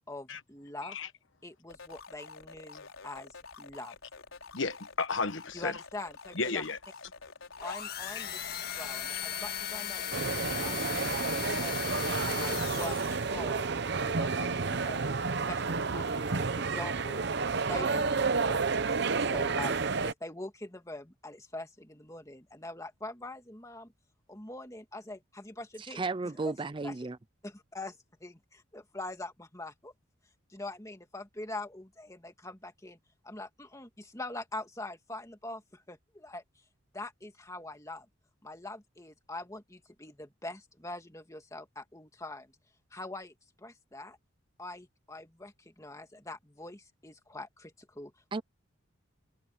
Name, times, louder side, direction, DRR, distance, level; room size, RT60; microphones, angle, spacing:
voice 1, 0.1-1.0 1.4-4.0 5.5-6.6 7.6-8.4 8.7-15.0 15.5-17.3 17.7-23.9 24.3-26.1 26.4-26.5 26.8-26.9 27.4-28.0 28.2-29.9 30.5-33.0 33.2-36.4 36.9-38.1 38.4-42.5 42.9-44.2 44.6-48.1, left 2 dB, 15° left, 2.1 m, -44 dB
sound 1, 1.7-7.7, left 4 dB, 85° left, 4.9 m, -49 dB
voice 2, 4.5-5.7 6.3-6.8 8.2-8.3, left 4 dB, 65° left, 1.3 m, -33 dB
sound 2, 7.6-13.4, left 9 dB, 50° left, 1.8 m, -37 dB
sound 3, 10.1-20.1, right 4 dB, 55° right, 0.8 m, -30 dB
voice 3, 25.9-27.2 48.3-48.4, right 3 dB, 25° right, 0.4 m, -33 dB
head